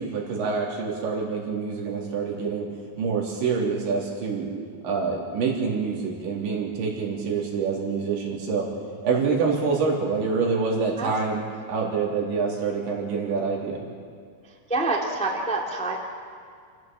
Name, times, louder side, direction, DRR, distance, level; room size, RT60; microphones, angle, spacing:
voice 1, 0.0-2.7 3.0-4.5 4.8-8.7 9.0-13.8, right 5 dB, 80° right, -4 dB, 5.9 m, -26 dB
voice 2, 14.7-16.0, right 2 dB, 5° left, -1 dB, 1.4 m, -26 dB
28.5 x 15.5 x 7.6 m, 2.2 s
omnidirectional pair, 5.1 m